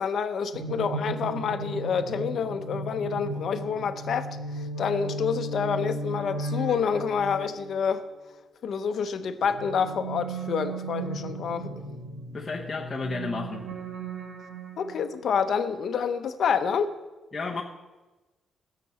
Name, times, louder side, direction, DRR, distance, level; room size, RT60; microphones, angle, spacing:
voice 1, 0.0-8.1 8.6-11.7 14.8-16.9, left 6 dB, 50° left, 0.8 m, -28 dB
sound 1, 0.5-8.0 9.2-15.2, right 2 dB, 85° right, 1.6 m, -36 dB
voice 2, 12.3-13.7 17.3-17.6, left 4 dB, 20° left, 0.9 m, -32 dB
15.0 x 6.8 x 6.9 m
cardioid pair, 175°, 0 cm